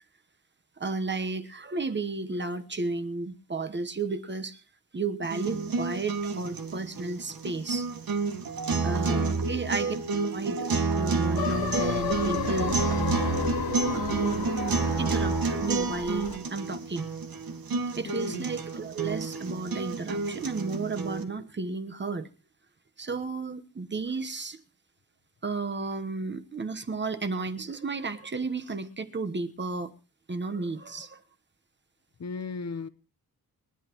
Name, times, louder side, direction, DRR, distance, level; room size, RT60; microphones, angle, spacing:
voice 1, 0.8-4.6 4.9-7.9 8.8-9.9 10.3-10.7 10.9-12.8 13.9-17.1 18.0-22.3 23.0-24.6 25.4-29.9 30.3-31.2, right 3 dB, 30° right, 1.1 m, -33 dB
sound 1, 5.2-21.2, right 4 dB, 75° right, 2.0 m, -30 dB
voice 2, 9.0-9.6 18.1-18.5 32.2-32.9, left 5 dB, 50° left, 0.9 m, -37 dB
sound 2, 11.4-16.4, left 6 dB, 85° left, 1.6 m, -32 dB
29.0 x 11.0 x 3.0 m
wide cardioid pair, 135°, 35 cm